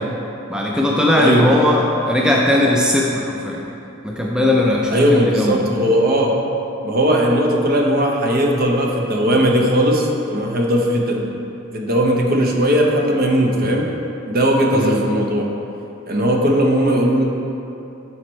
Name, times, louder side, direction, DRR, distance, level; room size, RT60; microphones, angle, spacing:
voice 1, 0.5-3.6 4.0-5.6 14.7-15.0, left 1 dB, 5° right, -3 dB, 0.4 m, -18 dB
voice 2, 1.1-1.5 4.9-6.4 6.8-11.3 11.7-13.9 14.3-15.5 16.1-17.2, equal, 45° right, 0 dB, 0.8 m, -18 dB
10.5 x 4.3 x 3.2 m, 2.8 s
head